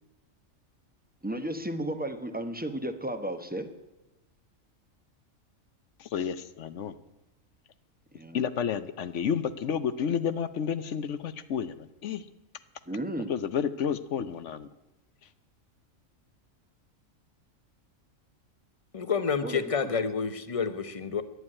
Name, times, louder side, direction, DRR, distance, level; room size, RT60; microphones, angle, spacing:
voice 1, 1.2-3.7 8.1-8.4 12.9-13.3 19.4-19.6, right 1 dB, 10° right, 7 dB, 0.8 m, -33 dB
voice 2, 6.0-6.9 8.3-12.2 13.3-14.7, left 7 dB, 65° left, 13 dB, 1.0 m, -30 dB
voice 3, 18.9-21.2, left 6 dB, 30° left, 11 dB, 0.8 m, -29 dB
11.0 x 9.2 x 9.7 m, 1.1 s
omnidirectional pair, 1.4 m